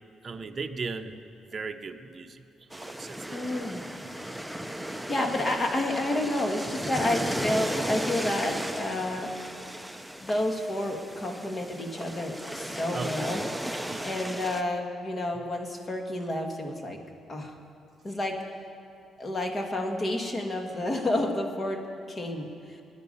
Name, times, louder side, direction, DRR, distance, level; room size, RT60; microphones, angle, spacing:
voice 1, 0.2-1.1 1.5-2.4 2.7-3.4 12.9-13.3 13.9-14.1, right 4 dB, 35° right, 5 dB, 0.8 m, -37 dB
sound 1, 2.7-14.6, right 1 dB, ahead, 0.6 m, -35 dB
voice 2, 3.3-3.8 4.5-4.6 5.1-9.3 10.2-13.4 14.0-17.0 17.3-17.5 18.0-18.4 19.2-21.8 22.1-22.8, left 1 dB, 30° left, 3 dB, 1.9 m, -30 dB
18.5 x 11.5 x 5.5 m, 2.5 s
cardioid pair, 90°, 0 cm